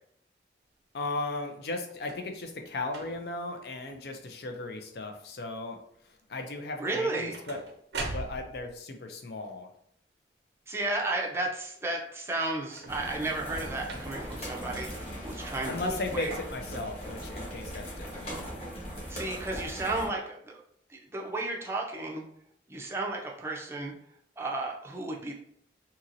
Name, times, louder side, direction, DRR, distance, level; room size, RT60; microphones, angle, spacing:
voice 1, 0.9-5.8 6.3-7.6 8.0-9.7 15.7-18.3, left 2 dB, 60° left, 4 dB, 0.5 m, -36 dB
sound 1, 1.9-2.3 2.9-3.4 4.0-4.4 4.7-5.2 6.9-8.8 12.6-13.2 13.8-14.4 15.2-15.3, right 3 dB, 75° right, 0.5 m, -41 dB
voice 2, 6.8-7.3 10.7-16.3 19.1-20.6 20.9-22.2 22.7-23.9 24.4-25.3, right 2 dB, 15° right, -1 dB, 0.4 m, -33 dB
sound 2, 12.9-20.1, equal, 35° left, 1.0 m, -39 dB
2.8 x 2.7 x 2.5 m, 0.69 s
head